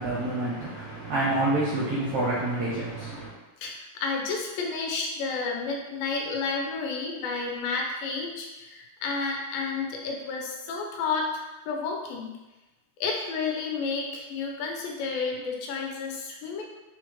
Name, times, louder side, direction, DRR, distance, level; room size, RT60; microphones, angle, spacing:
voice 1, 0.0-3.3, right 2 dB, 75° right, -7 dB, 1.7 m, -28 dB
voice 2, 3.6-12.4 13.0-16.6, left 4 dB, 80° left, 0 dB, 2.2 m, -31 dB
6.2 x 2.1 x 2.9 m, 1.1 s
omnidirectional pair, 4.1 m